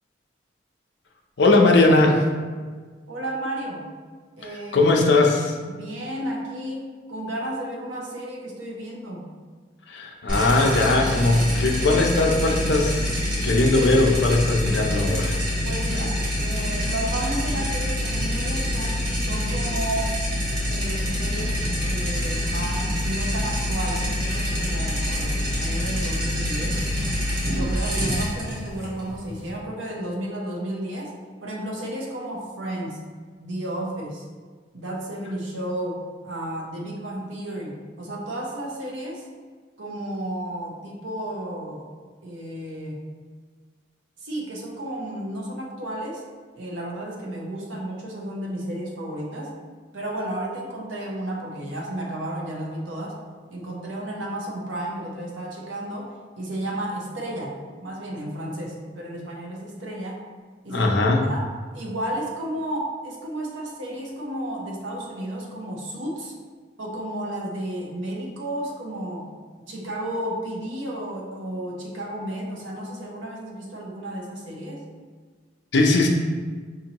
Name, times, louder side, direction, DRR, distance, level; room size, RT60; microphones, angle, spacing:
voice 1, 1.4-2.2 4.7-5.5 9.9-13.1 13.4-15.4 60.7-61.2 75.7-76.1, left 2 dB, 65° left, 1 dB, 0.5 m, -19 dB
voice 2, 3.1-3.8 4.4-4.9 5.7-9.3 15.6-20.2 20.6-26.8 27.5-31.1 31.4-33.0 33.4-34.3 34.7-39.2 39.8-41.9 42.2-43.0 44.2-46.2 46.6-49.5 49.9-53.2 53.5-60.2 60.6-60.9 61.2-61.5 61.7-66.4 66.8-69.3 69.7-74.8, right 1 dB, 80° right, -2 dB, 0.7 m, -32 dB
sound 1, 10.3-29.6, left 1 dB, 50° right, 1.1 m, -26 dB
5.2 x 2.7 x 2.8 m, 1.5 s
head